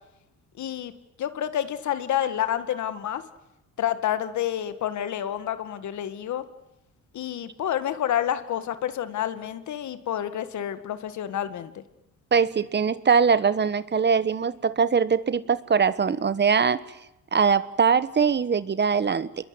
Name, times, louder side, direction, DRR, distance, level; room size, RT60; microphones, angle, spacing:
voice 1, 0.6-0.9 1.2-3.2 3.8-6.4 7.1-11.8, left 10 dB, 70° left, 11 dB, 1.9 m, -29 dB
voice 2, 12.3-16.8 17.3-19.4, right 6 dB, 35° right, 15 dB, 1.3 m, -22 dB
27.5 x 21.5 x 9.7 m, 0.90 s
cardioid pair, 90°, 30 cm